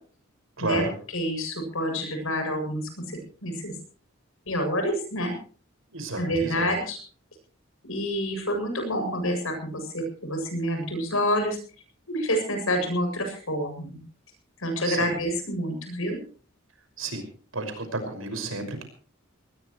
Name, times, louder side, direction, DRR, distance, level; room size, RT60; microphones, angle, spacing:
voice 1, 0.6-0.9 5.9-6.7 14.8-15.1 17.0-17.2 17.5-18.8, right 2 dB, 80° right, 7 dB, 5.7 m, -31 dB
voice 2, 1.1-2.8 3.1-3.7 4.5-5.3 6.2-7.0 7.9-11.6 12.1-14.0 14.6-16.2, equal, 80° left, 5 dB, 7.4 m, -28 dB
20.5 x 20.0 x 3.2 m, 0.41 s
head